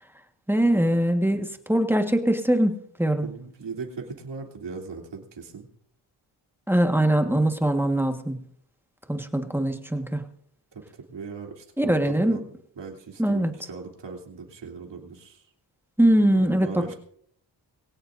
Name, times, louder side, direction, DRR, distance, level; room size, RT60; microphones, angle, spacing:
voice 1, 0.5-3.2 6.7-8.4 9.1-10.2 11.8-12.4 13.2-13.6 16.0-16.9, right 1 dB, 5° right, 5 dB, 1.5 m, -22 dB
voice 2, 3.2-5.7 11.1-12.4 12.8-15.4 16.2-16.9, right 5 dB, 65° right, 1 dB, 3.2 m, -38 dB
22.5 x 17.5 x 2.6 m, 0.65 s
cardioid pair, 90°, 45 cm